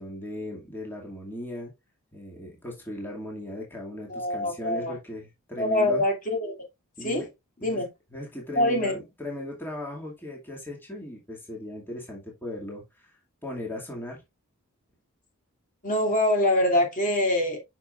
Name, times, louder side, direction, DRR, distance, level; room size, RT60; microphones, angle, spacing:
voice 1, 0.0-1.7 2.1-6.0 7.0-7.3 7.6-7.8 8.1-13.2 13.4-14.2, left 1 dB, 10° left, 2.3 m, -37 dB
voice 2, 4.1-4.9 5.6-6.5 7.0-7.3 7.6-7.9 8.5-8.9 15.8-17.6, left 1 dB, 40° left, 2.5 m, -24 dB
8.6 x 6.0 x 2.4 m
head